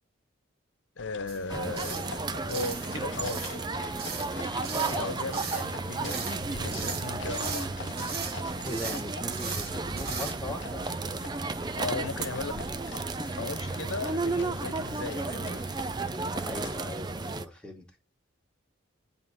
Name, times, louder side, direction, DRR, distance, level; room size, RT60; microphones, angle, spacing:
voice 1, 1.0-2.2 2.4-3.7 4.9-8.1 11.7-12.6 13.4-15.6, left 3 dB, 80° left, 1.1 m, -37 dB
sound 1, 1.0-16.8, left 4 dB, 60° left, 0.7 m, -45 dB
sound 2, 1.3-1.4 1.8-2.1 2.5-2.9 3.2-3.6 4.0-4.3 4.6-5.0 5.3-5.7 6.0-6.4 6.7-7.7 8.0-8.4 8.6-9.0 9.3-9.7 10.0-10.3, right 5 dB, 50° right, 1.5 m, -37 dB
sound 3, 1.5-17.5, right 3 dB, 20° right, 0.4 m, -33 dB
voice 2, 4.7-5.2 8.6-10.8 16.4-17.9, left 1 dB, 5° left, 1.9 m, -39 dB
9.8 x 3.6 x 6.3 m
head